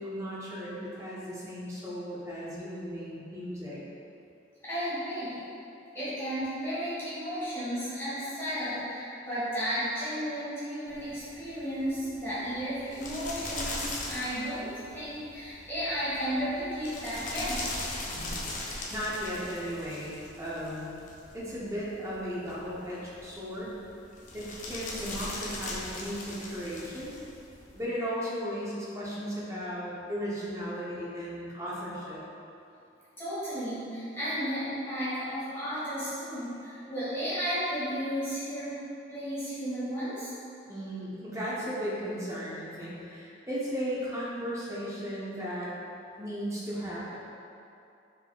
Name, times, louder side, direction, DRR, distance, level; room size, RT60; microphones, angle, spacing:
voice 1, 0.0-3.8 18.0-18.3 18.6-21.0 21.3-23.8 24.3-27.2 27.7-32.2 40.7-45.7 46.2-47.2, equal, 15° right, -7 dB, 0.7 m, -36 dB
voice 2, 4.6-5.3 5.9-17.6 33.2-38.8 39.1-40.3, equal, 15° left, -13 dB, 1.4 m, -33 dB
sound 1, 10.9-27.8, left 2 dB, 40° left, 0.5 m, -40 dB
5.2 x 3.5 x 2.3 m, 2.7 s
head